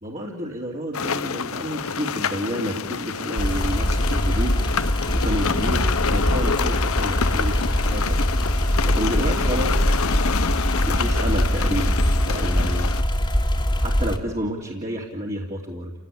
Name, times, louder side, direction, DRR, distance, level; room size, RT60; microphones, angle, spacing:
voice 1, 0.0-4.8 5.1-8.2 8.8-10.1 10.9-12.0 12.3-13.0 13.8-15.9, equal, 35° right, -2 dB, 2.9 m, -30 dB
sound 1, 0.9-13.0, left 5 dB, 70° left, 0.9 m, -28 dB
sound 2, 3.4-14.2, equal, 20° left, 2.2 m, -22 dB
29.5 x 18.0 x 9.9 m, 1.1 s
head